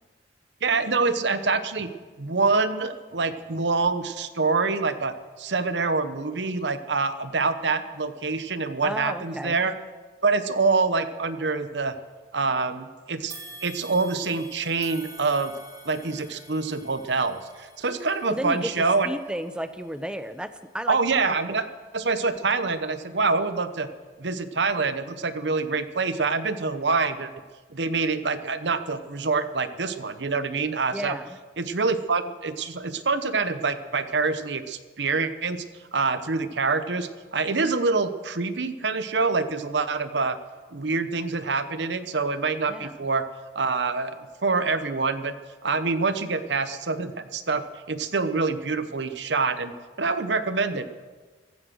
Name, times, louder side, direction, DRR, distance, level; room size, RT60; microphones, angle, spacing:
voice 1, 0.6-1.9 2.2-9.7 10.2-11.9 12.3-13.3 13.6-15.5 15.8-19.1 20.9-21.6 21.9-23.9 24.2-27.3 27.7-31.2 31.6-35.6 35.9-40.4 40.7-43.2 43.5-45.3 45.6-47.6 47.9-49.7 50.0-50.9, right 4 dB, 70° right, 11 dB, 1.0 m, -26 dB
voice 2, 8.8-9.6 18.3-18.7 19.0-21.0 21.5-21.6 30.9-31.4 42.7-43.1, equal, 5° right, 11 dB, 0.7 m, -33 dB
sound 1, 13.3-22.6 23.1-23.3 24.2-24.3, right 2 dB, 20° right, 2.9 m, -48 dB
15.5 x 13.0 x 6.3 m, 1.4 s
head